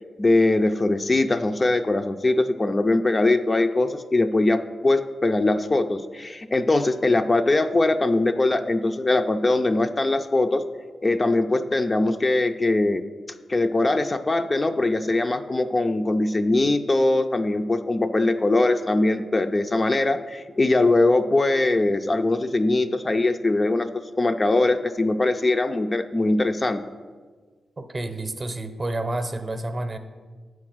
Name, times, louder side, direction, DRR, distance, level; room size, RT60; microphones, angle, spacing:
voice 1, 0.2-10.6 11.0-13.0 13.5-26.8, left 2 dB, 30° left, 7 dB, 0.4 m, -21 dB
voice 2, 27.8-30.0, right 2 dB, 35° right, 8 dB, 0.7 m, -29 dB
8.4 x 4.8 x 6.1 m, 1.5 s
cardioid pair, 75°, 0 cm